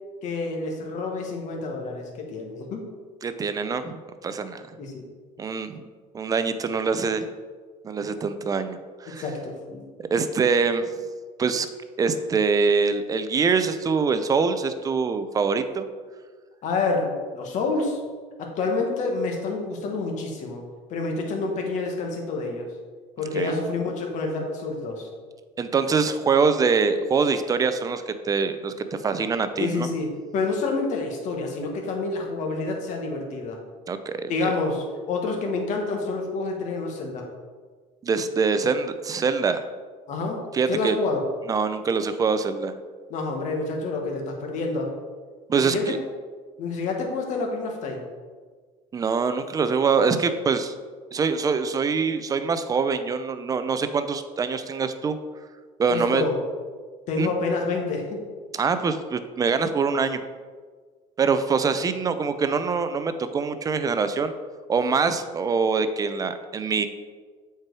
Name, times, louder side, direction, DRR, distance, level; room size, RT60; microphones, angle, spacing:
voice 1, 0.2-2.8 4.8-5.1 9.1-9.8 16.6-18.0 18.4-20.6 20.9-22.7 23.2-25.1 29.6-33.6 34.3-37.3 40.1-40.4 40.7-41.2 43.1-44.9 45.6-45.9 46.6-48.0 55.9-56.4 57.1-58.3, left 3 dB, 55° left, 1 dB, 1.6 m, -28 dB
voice 2, 3.2-4.7 5.4-5.8 6.1-7.3 7.8-9.2 10.0-10.8 11.4-11.7 12.0-15.9 23.3-23.5 25.6-29.9 33.9-34.3 38.0-39.7 40.5-41.0 41.5-42.7 45.5-46.0 48.9-50.7 51.1-55.2 55.8-56.3 57.2-57.3 58.5-60.3 61.2-64.3 64.7-66.9, right 5 dB, 25° right, 10 dB, 0.5 m, -24 dB
7.7 x 4.6 x 4.7 m, 1.5 s
cardioid pair, 130°, 15 cm